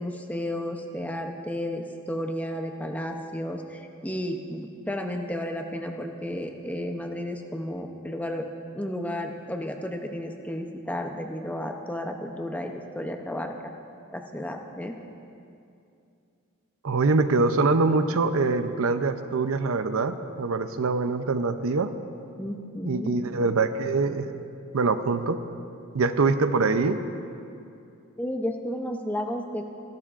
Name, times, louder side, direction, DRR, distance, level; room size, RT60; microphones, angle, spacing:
voice 1, 0.0-8.5 8.7-13.5 14.1-15.0 22.4-23.1 28.2-29.6, left 1 dB, 5° left, 4 dB, 0.6 m, -32 dB
voice 2, 16.8-21.9 22.9-24.4 24.7-25.4 25.9-27.0, right 3 dB, 75° right, 10 dB, 0.6 m, -24 dB
26.5 x 12.0 x 2.5 m, 2.6 s
head